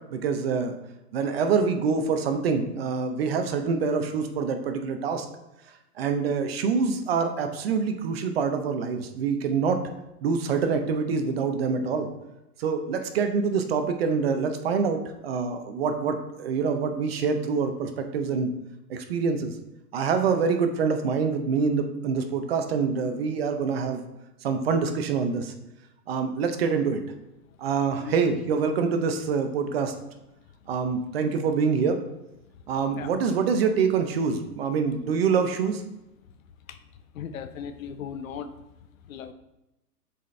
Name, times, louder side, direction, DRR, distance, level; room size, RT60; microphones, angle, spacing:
voice 1, 0.1-0.7 1.1-5.3 6.0-9.8 10.2-12.1 12.6-18.5 18.9-19.5 19.9-24.0 24.4-25.5 26.1-27.0 27.6-29.9 30.7-32.0 32.7-35.8, right 5 dB, 40° right, 6 dB, 0.6 m, -25 dB
voice 2, 37.1-38.5 39.1-39.3, left 8 dB, 55° left, 10 dB, 0.7 m, -37 dB
7.4 x 4.2 x 3.2 m, 0.92 s
hypercardioid pair, 150°, 48 cm